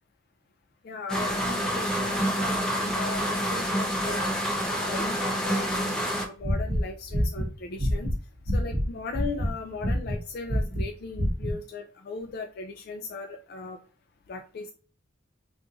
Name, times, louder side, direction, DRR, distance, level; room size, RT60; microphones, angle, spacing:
voice 1, 0.8-4.2 4.7-8.1 8.5-13.8 14.3-14.7, left 4 dB, 55° left, 3 dB, 0.4 m, -38 dB
sound 1, 1.1-6.3, equal, 5° left, 0.7 m, -27 dB
sound 2, 6.4-8.9 9.1-9.5 9.8-10.2 10.5-10.9 11.1-11.5, equal, 45° right, 0.9 m, -26 dB
3.7 x 2.4 x 2.9 m, 0.38 s
head